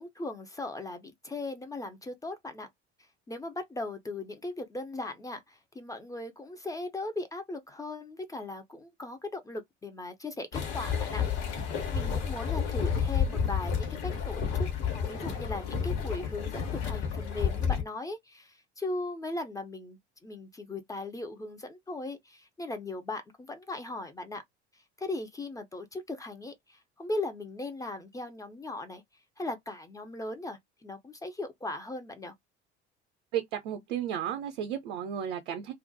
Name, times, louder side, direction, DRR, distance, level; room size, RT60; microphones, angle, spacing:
voice 1, 0.0-2.7 3.3-11.6 11.9-24.4 24.7-29.0 29.4-32.3, left 2 dB, 10° left, 0.4 m, -38 dB
sound 1, 10.5-17.8, left 7 dB, 60° left, 1.0 m, -30 dB
voice 2, 33.3-35.7, right 9 dB, 65° right, 0.5 m, -33 dB
2.3 x 2.0 x 2.6 m
figure-of-eight pair, 60°, 34 cm